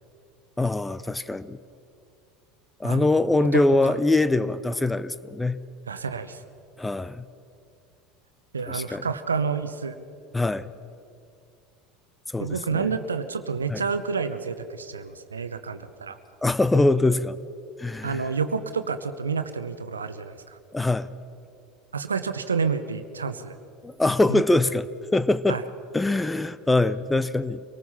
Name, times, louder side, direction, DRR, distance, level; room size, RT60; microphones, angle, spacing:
voice 1, 0.6-1.6 2.8-5.6 6.8-7.3 8.7-9.1 10.3-10.7 12.3-12.9 13.7-13.8 16.4-17.4 17.8-18.3 20.7-21.1 23.8-24.9 25.1-25.6 25.9-27.6, left 2 dB, 10° left, 16 dB, 0.7 m, -23 dB
voice 2, 3.4-3.9 5.9-6.4 8.5-10.0 12.4-16.2 18.0-20.6 21.9-23.5 24.3-24.4 25.5-25.6, right 5 dB, 85° right, 11 dB, 0.9 m, -29 dB
25.0 x 18.5 x 5.7 m, 2.5 s
figure-of-eight pair, 75°, 0 cm